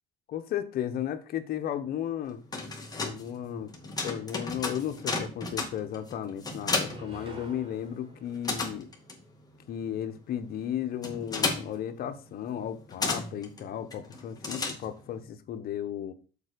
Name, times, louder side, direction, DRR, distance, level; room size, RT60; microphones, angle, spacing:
voice 1, 0.3-2.4 3.0-3.7 4.0-8.9 9.7-16.1, left 10 dB, 65° left, 1.0 m, -34 dB
sound 1, 2.3-7.9 8.1-15.2, left 3 dB, 20° left, 2.1 m, -34 dB
sound 2, 5.1-5.2 5.5-6.3 6.7-9.3, right 2 dB, 35° right, 3.3 m, -51 dB
7.3 x 4.4 x 6.6 m
cardioid pair, 110°, 17 cm